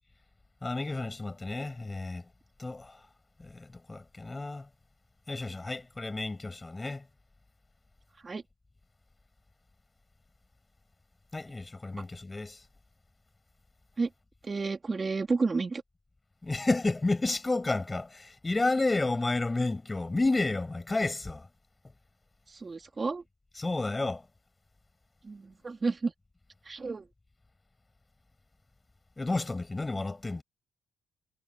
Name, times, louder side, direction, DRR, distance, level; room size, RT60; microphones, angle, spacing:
voice 1, 0.6-2.2 2.6-2.9 3.4-4.6 5.3-7.0 11.3-12.6 16.4-21.4 23.6-24.2 29.2-30.4, left 2 dB, 20° left, 6.4 m, -31 dB
voice 2, 14.4-15.8 22.5-23.2 25.2-26.1 26.7-27.1, right 4 dB, 30° right, 2.8 m, -31 dB
cardioid pair, 90°, 0 cm